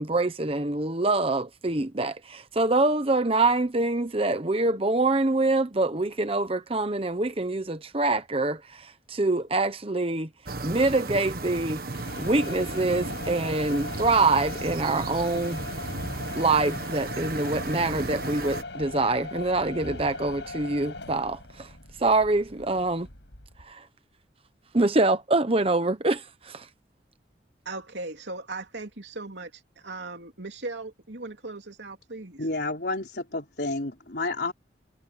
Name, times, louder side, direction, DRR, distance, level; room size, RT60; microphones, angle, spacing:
voice 1, 0.0-10.3 10.6-11.8 12.2-15.6 16.3-21.7 22.0-23.1 23.6-23.8 24.7-26.7, right 2 dB, 30° right, 1.0 m, -25 dB
sound 1, 10.5-18.6, right 2 dB, 55° right, 1.5 m, -35 dB
sound 2, 11.9-23.7, left 3 dB, 80° left, 5.7 m, -39 dB
voice 2, 27.6-32.4, right 2 dB, 75° right, 3.3 m, -38 dB
voice 3, 32.4-34.5, left 2 dB, 60° left, 4.3 m, -30 dB
head